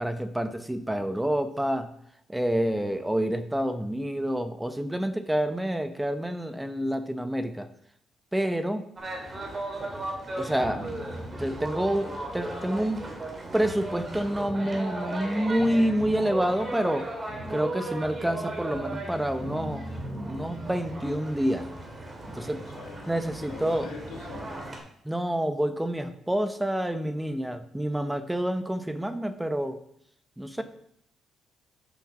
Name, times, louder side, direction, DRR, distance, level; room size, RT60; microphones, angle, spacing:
voice 1, 0.0-1.9 2.3-7.7 8.3-8.9 10.4-10.8 11.4-13.1 13.5-17.1 17.5-19.9 20.3-21.7 22.3-22.7 23.1-23.9 25.0-29.8 30.4-30.6, right 1 dB, 10° right, 10 dB, 0.7 m, -28 dB
sound 1, 9.0-24.8, right 1 dB, 30° right, 2.1 m, -36 dB
voice 2, 22.3-24.6 30.6-30.7, left 4 dB, 85° left, 1 dB, 2.1 m, -43 dB
7.1 x 5.7 x 6.0 m, 0.71 s
cardioid pair, 90°, 0 cm